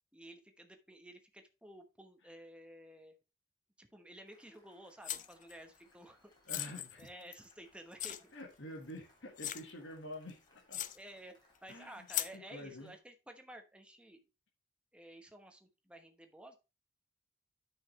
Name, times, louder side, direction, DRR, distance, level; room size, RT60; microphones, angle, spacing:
voice 1, 0.1-3.2 3.8-6.3 6.7-8.3 10.9-14.2 14.9-16.6, right 1 dB, 5° right, 5 dB, 1.1 m, -53 dB
Cheering / Applause, 4.2-13.0, left 1 dB, 25° left, 3.2 m, -70 dB
sound 1, 5.0-5.5 6.5-7.5 8.0-8.2 8.8-8.9 9.4-9.7 10.3-10.4 10.7-11.0 12.1-12.4, left 12 dB, 40° left, 0.5 m, -38 dB
voice 2, 6.5-7.1 8.3-10.8 11.7-12.1 12.3-12.9, left 1 dB, 80° left, 0 dB, 1.6 m, -48 dB
9.7 x 5.7 x 3.2 m, 0.29 s
head